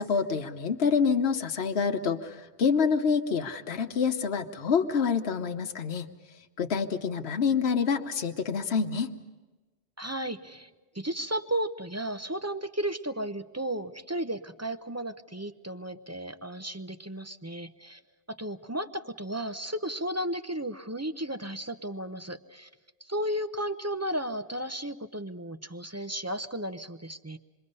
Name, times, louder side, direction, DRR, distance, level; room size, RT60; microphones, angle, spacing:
voice 1, 0.0-6.1 6.6-9.1, left 6 dB, 75° left, 6 dB, 1.2 m, -27 dB
voice 2, 10.0-10.7 10.9-18.0 18.3-22.7 23.0-27.4, right 1 dB, 20° right, 9 dB, 0.6 m, -34 dB
27.5 x 22.0 x 5.4 m, 1.2 s
omnidirectional pair, 1.1 m